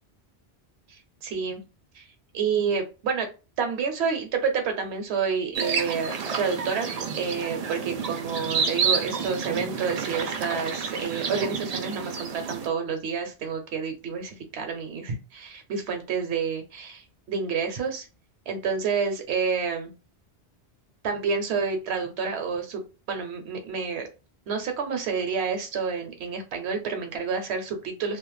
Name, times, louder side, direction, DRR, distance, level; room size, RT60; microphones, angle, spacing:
voice 1, 1.2-1.6 1.9-2.1 2.3-3.3 3.6-18.1 18.5-19.9 21.0-22.8 23.1-24.1 24.5-28.2, right 5 dB, 80° right, 5 dB, 0.9 m, -29 dB
sound 1, 5.5-12.7, right 6 dB, 55° right, 0.4 m, -30 dB
2.4 x 2.1 x 3.0 m, 0.31 s
omnidirectional pair, 1.1 m